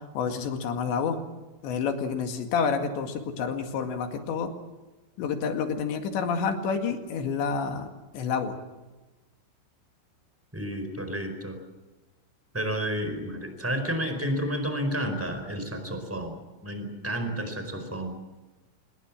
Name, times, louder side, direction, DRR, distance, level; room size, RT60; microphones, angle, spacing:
voice 1, 0.1-1.2 1.6-4.5 5.2-7.9 8.1-8.5, left 6 dB, 65° left, 5 dB, 4.1 m, -28 dB
voice 2, 10.5-11.6 12.5-16.4 16.6-18.2, equal, 5° right, 7 dB, 3.6 m, -31 dB
26.0 x 21.0 x 7.4 m, 1.1 s
omnidirectional pair, 5.9 m